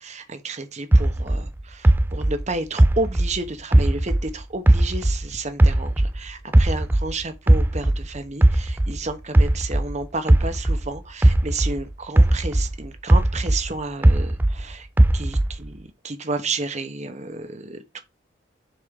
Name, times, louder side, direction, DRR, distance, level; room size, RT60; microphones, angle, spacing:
voice 1, 0.0-14.9 15.1-18.0, right 3 dB, 35° right, 1.1 m, -31 dB
sound 1, 0.9-4.3 4.7-7.1 7.5-11.8 12.2-14.6 15.0-15.7, right 1 dB, 10° right, 0.3 m, -18 dB
6.7 x 4.3 x 3.8 m
head